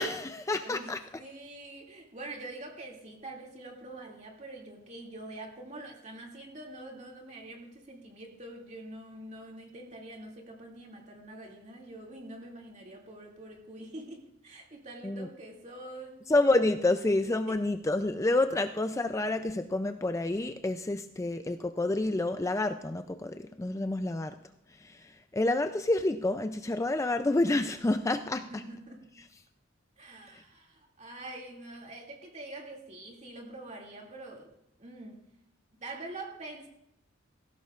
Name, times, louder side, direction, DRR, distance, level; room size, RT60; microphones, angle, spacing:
voice 1, 0.0-1.0 15.0-15.3 16.3-24.4 24.7-28.6 30.3-30.4, left 2 dB, 15° left, 8 dB, 0.4 m, -29 dB
voice 2, 0.6-16.3 17.5-17.7 28.5-29.1 30.0-34.5 34.8-35.2 35.8-36.7, right 2 dB, 35° right, 0 dB, 2.4 m, -45 dB
18.5 x 16.0 x 2.4 m, 0.82 s
head